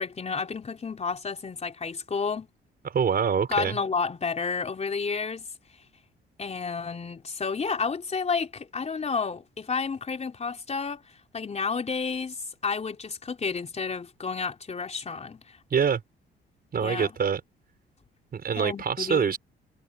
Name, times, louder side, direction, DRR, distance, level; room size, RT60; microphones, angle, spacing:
voice 1, 0.0-2.5 3.5-5.5 6.4-11.0 11.3-12.4 12.6-15.6 16.8-17.1 18.6-19.3, left 5 dB, 35° left, 3.6 m, -31 dB
voice 2, 2.9-3.8 15.7-16.0 16.7-17.4 18.3-19.4, right 7 dB, 50° right, 5.9 m, -25 dB
cardioid pair, 90°, 20 cm